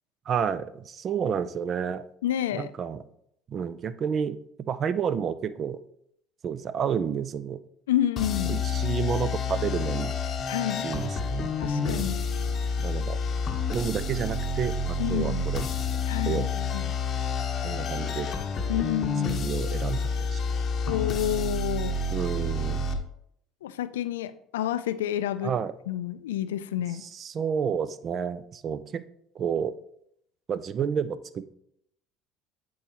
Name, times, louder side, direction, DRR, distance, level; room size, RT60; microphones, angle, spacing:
voice 1, 0.3-2.0 2.5-3.0 3.5-5.8 6.4-7.6 8.5-10.1 10.8-11.5 11.8-12.2 12.8-13.2 13.7-15.7 16.2-16.5 17.6-18.3 19.2-20.4 20.9-21.0 22.1-22.9 25.4-25.7 27.0-29.0 29.4-29.7 30.5-31.5, right 7 dB, 45° right, 15 dB, 0.4 m, -30 dB
voice 2, 2.2-2.7 7.9-8.6 10.5-10.9 11.6-12.2 15.0-15.5 16.1-16.9 18.7-19.4 20.9-22.0 23.6-25.5 25.9-27.0, left 12 dB, 90° left, 14 dB, 0.3 m, -29 dB
sound 1, 8.2-23.0, left 4 dB, 45° left, 0.8 m, -29 dB
8.4 x 4.6 x 2.9 m, 0.72 s
hypercardioid pair, 75°, 0 cm